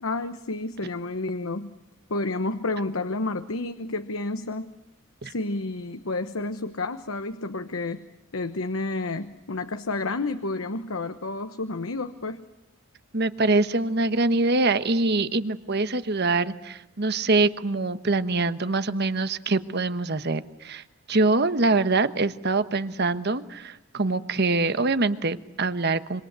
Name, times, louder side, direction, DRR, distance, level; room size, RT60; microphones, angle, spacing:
voice 1, 0.0-1.8 2.1-4.7 5.2-8.1 8.3-12.4, left 2 dB, 80° left, 9 dB, 1.1 m, -30 dB
voice 2, 13.1-20.8 21.1-26.2, right 3 dB, 50° right, 11 dB, 1.2 m, -24 dB
26.0 x 25.5 x 8.2 m, 0.93 s
head